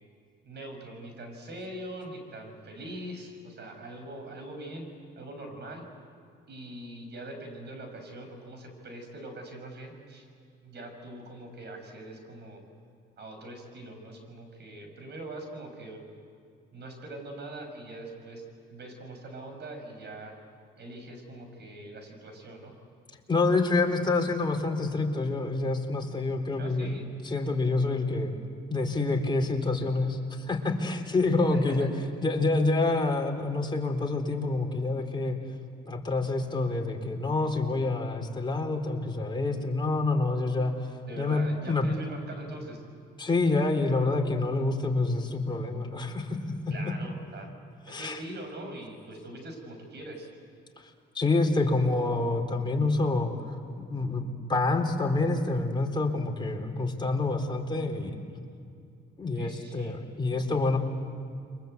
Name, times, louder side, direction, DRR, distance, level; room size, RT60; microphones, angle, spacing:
voice 1, 0.4-4.9 5.2-5.8 6.5-10.3 10.6-12.6 13.2-16.0 16.7-18.4 18.7-20.3 20.8-22.7 26.5-27.1 31.5-31.9 41.1-42.8 46.7-47.5 47.9-50.3 59.4-60.0, right 1 dB, 60° right, 4 dB, 6.8 m, -42 dB
voice 2, 23.3-26.9 27.2-28.3 28.7-31.9 32.2-35.4 35.9-40.9 41.2-41.9 43.2-46.4 47.9-48.2 51.1-53.3 53.8-58.2 59.2-60.8, left 3 dB, 25° left, 2 dB, 4.0 m, -27 dB
30.0 x 23.5 x 8.2 m, 2.4 s
cardioid pair, 90°, 20 cm